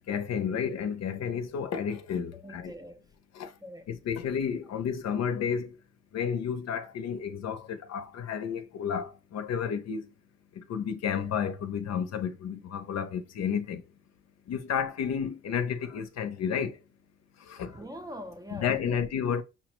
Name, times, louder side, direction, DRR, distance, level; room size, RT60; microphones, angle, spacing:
voice 1, 0.1-2.7 3.4-3.5 3.9-5.7 6.1-10.0 10.6-13.8 14.5-16.7 17.5-17.7 18.5-19.4, left 7 dB, 60° left, 0.6 m, -31 dB
voice 2, 2.4-3.1 3.6-3.9 17.7-19.1, equal, 15° right, 0.4 m, -43 dB
5.6 x 2.1 x 3.0 m
cardioid pair, 90°, 30 cm